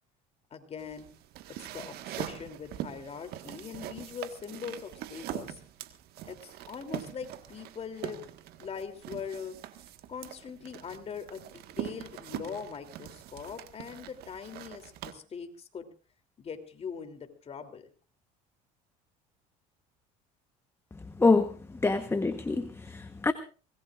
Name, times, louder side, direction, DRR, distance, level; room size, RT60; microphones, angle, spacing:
voice 1, 0.5-1.1 1.7-5.6 6.2-8.3 8.6-9.6 10.1-15.9 16.4-17.9, left 6 dB, 35° left, 6 dB, 3.1 m, -41 dB
sound 1, 0.8-15.1, right 13 dB, 65° right, 1.6 m, -43 dB
voice 2, 21.2-23.3, left 3 dB, 15° left, 10 dB, 1.1 m, -26 dB
25.0 x 19.0 x 2.5 m, 0.37 s
supercardioid pair, 95°, 17 cm